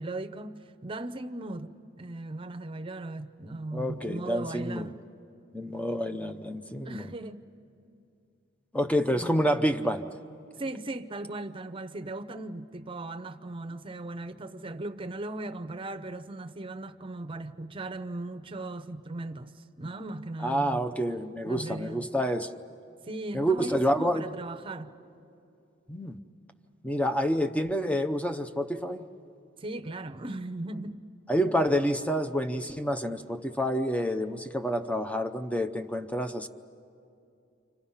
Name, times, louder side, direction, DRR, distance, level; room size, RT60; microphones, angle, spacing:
voice 1, 0.0-5.0 6.8-7.5 9.1-9.4 10.6-20.9 21.4-22.1 23.0-24.9 29.6-31.0, right 2 dB, 25° right, 0.7 m, -38 dB
voice 2, 3.7-4.9 5.5-7.1 8.7-10.0 20.4-22.5 23.3-24.3 25.9-26.2 26.8-29.1 31.3-36.5, equal, 5° left, 0.7 m, -28 dB
29.0 x 26.0 x 5.7 m
head